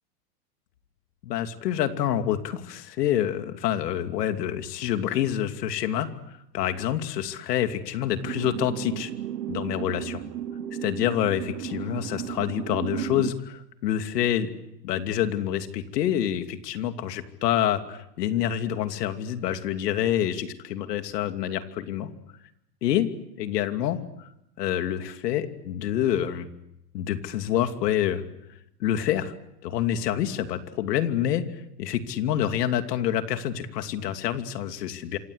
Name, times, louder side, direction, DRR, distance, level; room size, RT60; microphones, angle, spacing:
voice 1, 1.2-6.1 6.5-9.1 9.5-10.2 10.8-14.5 14.8-22.1 22.8-23.1 23.4-24.0 24.6-26.5 26.9-28.2 28.8-29.3 29.6-31.4 31.8-35.2, left 11 dB, 75° left, 8 dB, 2.8 m, -27 dB
sound 1, 8.2-13.3, right 11 dB, 90° right, 1.5 m, -34 dB
27.0 x 26.0 x 8.1 m, 0.83 s
supercardioid pair, 160°, 48 cm